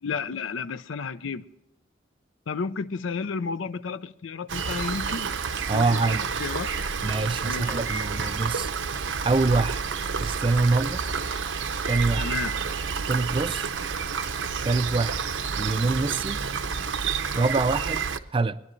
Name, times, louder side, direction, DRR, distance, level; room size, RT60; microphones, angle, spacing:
voice 1, 0.0-1.4 2.5-5.3 5.7-6.7 7.4-7.8 12.2-12.5, left 5 dB, 85° left, 0.5 m, -32 dB
Rain, 4.5-18.2, right 5 dB, 80° right, 0.7 m, -29 dB
voice 2, 5.7-6.2 7.0-8.7 9.2-9.8 10.2-11.0 11.9-12.3 13.1-13.7 14.6-15.2 15.6-16.4 17.3-18.0 18.3-18.6, right 3 dB, 25° right, 0.4 m, -25 dB
21.0 x 11.0 x 3.2 m
head